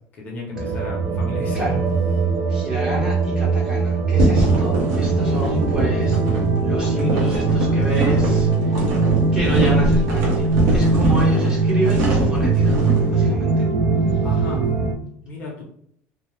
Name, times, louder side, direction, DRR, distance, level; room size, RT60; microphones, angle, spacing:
voice 1, 0.1-1.8 14.2-14.6 15.2-15.6, left 1 dB, 30° left, -2 dB, 0.7 m, -33 dB
sound 1, 0.6-14.9, right 4 dB, 40° right, 0.5 m, -20 dB
voice 2, 2.5-8.8 9.3-12.8 13.1-13.7, equal, 15° right, -4 dB, 0.8 m, -28 dB
sound 2, 4.2-13.1, right 1 dB, 55° right, 0.9 m, -23 dB
2.7 x 2.0 x 3.2 m, 0.67 s
cardioid pair, 175°, 6 cm